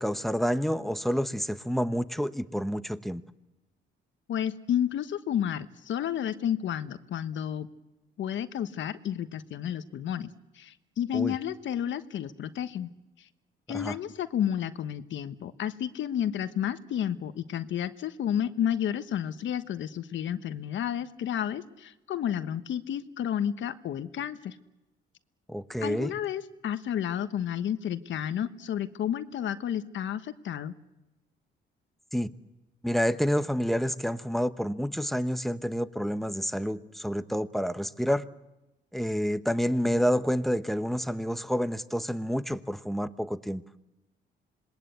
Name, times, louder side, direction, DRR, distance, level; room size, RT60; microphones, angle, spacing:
voice 1, 0.0-3.2 11.1-11.3 13.7-14.0 25.5-26.1 32.1-32.3 32.8-38.2 38.9-43.6, equal, ahead, 12 dB, 1.0 m, -28 dB
voice 2, 4.3-7.7 8.2-10.3 10.6-12.9 13.7-24.6 25.8-30.7, left 10 dB, 70° left, 11 dB, 1.2 m, -31 dB
27.0 x 20.5 x 8.2 m, 0.99 s
cardioid pair, 90°, 20 cm